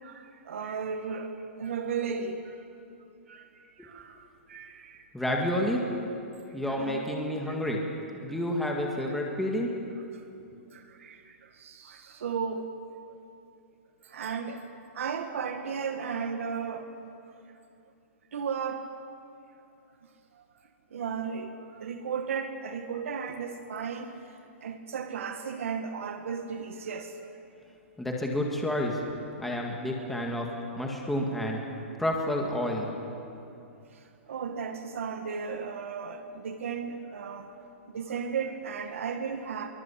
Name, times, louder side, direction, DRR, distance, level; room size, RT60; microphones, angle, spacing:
voice 1, 0.0-1.3 1.6-2.6 3.3-3.4 3.8-5.0 6.7-7.1 7.5-7.6 10.7-12.7 14.0-14.6 14.9-17.1 18.3-18.9 20.9-24.2 24.6-27.3 34.3-37.6 37.9-39.7, right 6 dB, 75° right, 5 dB, 2.0 m, -35 dB
voice 2, 5.1-5.8 6.5-7.8 8.2-9.7 28.0-29.0 29.4-30.5 30.8-31.6 32.0-32.9, left 1 dB, ahead, 0 dB, 1.9 m, -29 dB
26.0 x 23.5 x 8.5 m, 2.7 s
hypercardioid pair, 175°, 7 cm